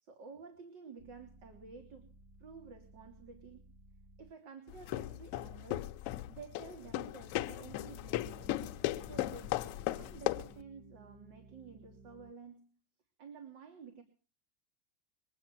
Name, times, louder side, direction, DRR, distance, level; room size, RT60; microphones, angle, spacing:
voice 1, 0.0-2.1 2.4-3.6 4.2-6.0 6.3-8.6 9.0-9.6 9.9-12.7 13.2-14.0, right 5 dB, 60° right, 5 dB, 2.9 m, -51 dB
sound 1, 1.0-4.4 8.3-12.3, right 3 dB, 35° right, 2.2 m, -59 dB
sound 2, 4.7-10.6, left 15 dB, 55° left, 1.0 m, -37 dB
23.0 x 8.8 x 6.1 m, 0.39 s
supercardioid pair, 135°, 0 cm